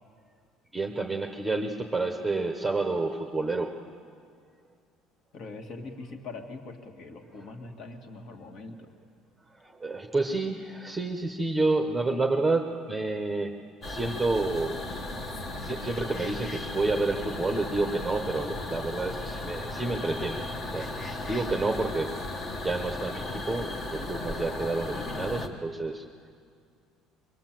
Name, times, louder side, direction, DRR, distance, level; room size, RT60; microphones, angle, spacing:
voice 1, 0.7-3.8 9.6-13.5 13.9-14.8 15.6-22.2 22.5-26.0, right 3 dB, 5° right, 3 dB, 1.0 m, -29 dB
voice 2, 5.3-9.0, left 3 dB, 50° left, 4 dB, 2.1 m, -42 dB
sound 1, 13.8-25.5, left 2 dB, 30° left, 1.4 m, -36 dB
23.5 x 20.5 x 7.6 m, 2.2 s
cardioid pair, 155°, 0 cm